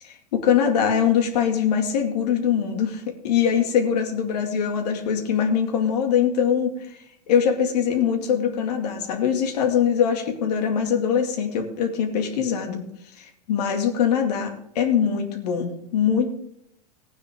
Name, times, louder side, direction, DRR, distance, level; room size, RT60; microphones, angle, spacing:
voice 1, 0.0-6.8 7.3-12.8 13.2-16.3, left 8 dB, 70° left, 4 dB, 2.3 m, -22 dB
16.0 x 9.6 x 3.7 m, 0.74 s
hypercardioid pair, 115°, 21 cm